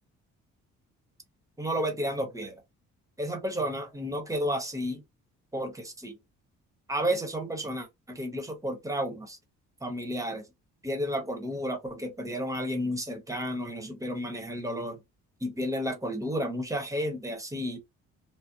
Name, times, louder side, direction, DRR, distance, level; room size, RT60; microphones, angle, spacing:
voice 1, 1.6-2.5 3.2-5.0 5.5-6.1 6.9-9.4 9.8-10.4 10.8-15.0 15.4-17.8, equal, 10° right, 0.8 m, -32 dB
2.6 x 2.0 x 2.5 m
cardioid pair, 90°, 30 cm